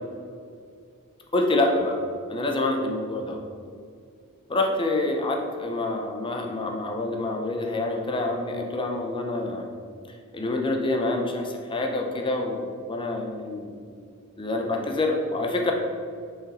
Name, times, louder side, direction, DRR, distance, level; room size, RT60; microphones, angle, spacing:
voice 1, 1.3-2.0 2.3-3.4 4.5-9.7 10.3-13.7 14.4-15.7, left 2 dB, 20° left, 2 dB, 0.6 m, -27 dB
6.1 x 5.0 x 4.1 m, 2.3 s
head